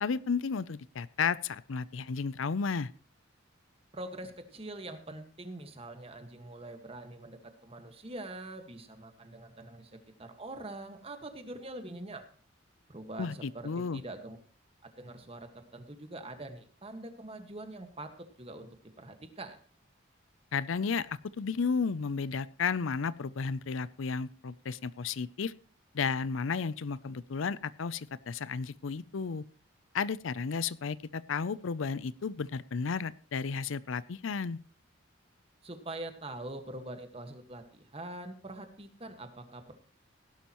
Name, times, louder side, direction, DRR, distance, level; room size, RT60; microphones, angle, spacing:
voice 1, 0.0-2.9 13.2-14.0 20.5-21.1 21.4-25.5 25.9-29.4 29.9-34.6, left 5 dB, 80° left, 18 dB, 0.5 m, -33 dB
voice 2, 3.9-12.2 12.9-14.4 14.8-18.7 19.0-19.6 35.6-39.7, right 2 dB, 30° right, 7 dB, 1.6 m, -44 dB
17.5 x 11.5 x 3.0 m, 0.42 s
head